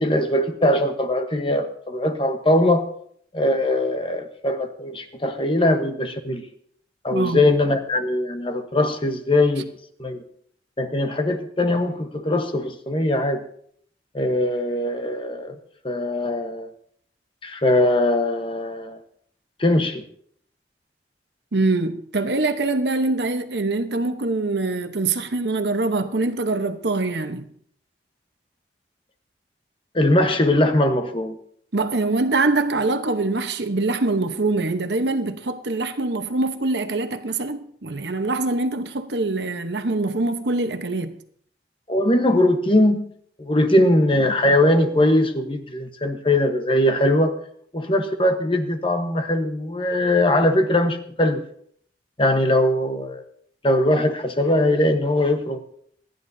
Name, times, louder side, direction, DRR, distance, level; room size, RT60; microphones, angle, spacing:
voice 1, 0.0-2.9 3.3-6.5 7.0-9.7 10.0-10.2 10.8-13.4 14.1-15.6 15.8-16.7 17.4-19.0 19.6-20.0 29.9-31.4 41.9-43.1 43.4-47.4 47.7-51.4 52.2-53.2 53.6-55.6, left 1 dB, 30° left, 1.1 m, -21 dB
voice 2, 7.1-7.4 21.5-27.5 31.7-41.2, right 2 dB, 75° right, 1.0 m, -24 dB
26.5 x 10.5 x 2.8 m
head